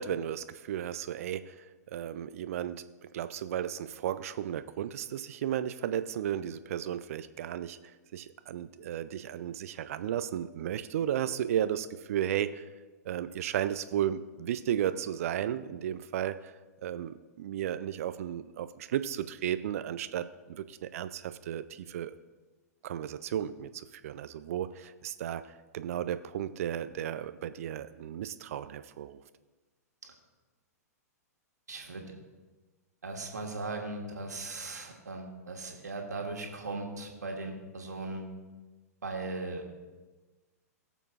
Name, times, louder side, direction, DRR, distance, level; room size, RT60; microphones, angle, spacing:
voice 1, 0.0-2.9 3.1-12.7 13.0-16.5 16.8-22.1 22.8-29.2, right 10 dB, 60° right, 13 dB, 0.4 m, -34 dB
voice 2, 31.7-32.0 33.0-38.3 39.0-39.6, right 3 dB, 80° right, 2 dB, 1.7 m, -38 dB
20.0 x 7.0 x 2.4 m, 1.3 s
figure-of-eight pair, 105°, 9 cm